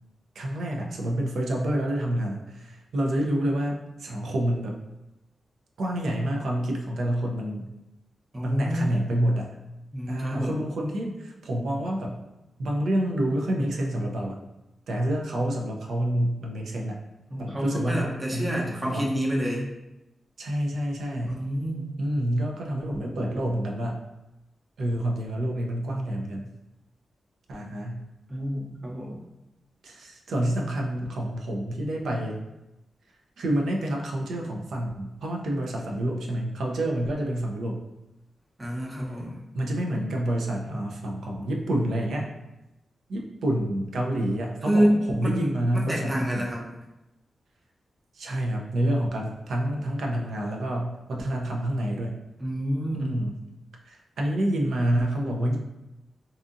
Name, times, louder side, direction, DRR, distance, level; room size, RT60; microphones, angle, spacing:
voice 1, 0.3-4.8 5.8-7.7 8.4-9.5 10.1-12.2 12.6-14.4 14.9-17.0 17.4-19.1 20.4-21.4 22.0-24.0 24.8-26.5 27.5-28.0 29.8-32.4 33.4-37.8 39.5-42.3 43.1-44.9 45.1-46.5 48.1-52.2 53.0-53.4 53.8-55.6, right 1 dB, 80° right, 0 dB, 0.4 m, -28 dB
voice 2, 8.3-9.0 9.9-10.6 17.3-19.7 21.2-22.0 28.3-29.2 38.6-39.4 44.6-46.7 52.4-53.3, equal, 30° right, -3 dB, 0.7 m, -28 dB
2.7 x 2.4 x 2.5 m, 0.97 s
cardioid pair, 60°, 0 cm